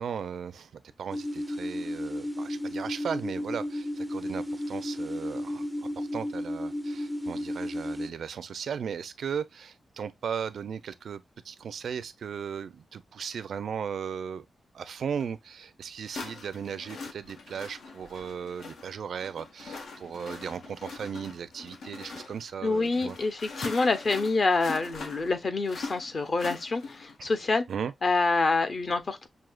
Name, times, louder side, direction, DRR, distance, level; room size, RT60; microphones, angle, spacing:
voice 1, 0.0-14.4 14.7-23.2 27.2-27.3 27.7-27.9, right 7 dB, 70° right, 0.4 m, -37 dB
sound 1, 1.1-8.1, left 1 dB, 10° right, 0.4 m, -33 dB
sound 2, 15.2-15.3 16.1-27.2, left 4 dB, 85° left, 1.0 m, -42 dB
voice 2, 22.6-27.6 28.0-29.3, left 3 dB, 40° left, 0.7 m, -26 dB
6.2 x 2.7 x 2.2 m
wide cardioid pair, 170°, 0 cm